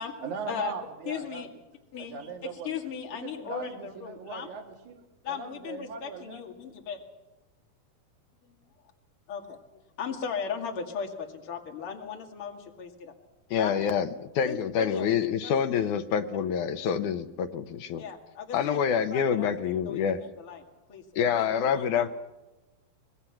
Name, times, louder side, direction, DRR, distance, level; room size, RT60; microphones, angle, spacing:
voice 1, 0.2-1.6 2.0-2.8 3.1-6.4, right 5 dB, 60° right, 1 dB, 3.4 m, -39 dB
voice 2, 1.1-1.5 1.9-4.5 5.2-7.0 9.3-13.1 13.5-13.7 14.4-15.9 18.0-18.8 19.1-20.6 20.9-21.5 21.7-22.0, left 7 dB, 40° left, 2 dB, 2.8 m, -37 dB
voice 3, 13.5-18.0 18.5-20.2 21.2-22.1, left 7 dB, 70° left, 8 dB, 2.2 m, -27 dB
25.5 x 20.5 x 6.0 m, 1.0 s
omnidirectional pair, 4.2 m